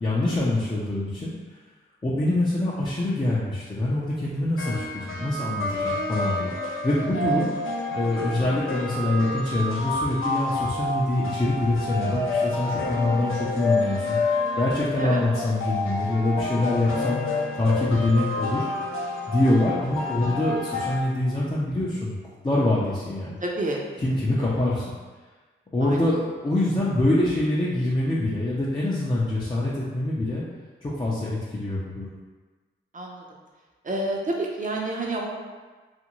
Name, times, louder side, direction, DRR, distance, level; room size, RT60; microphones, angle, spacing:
voice 1, 0.0-1.3 2.0-7.5 7.9-17.2 17.5-18.7 19.3-23.4 24.0-25.0 25.7-30.4 30.8-32.1, left 1 dB, 25° left, -7 dB, 0.5 m, -25 dB
sound 1, 4.6-21.0, left 2 dB, 85° left, 0.5 m, -29 dB
voice 2, 23.4-23.8 24.1-24.2 25.8-26.0 32.9-33.2 33.8-35.3, right 2 dB, 40° right, -1 dB, 0.6 m, -29 dB
2.6 x 2.5 x 2.9 m, 1.3 s
cardioid pair, 60°, 21 cm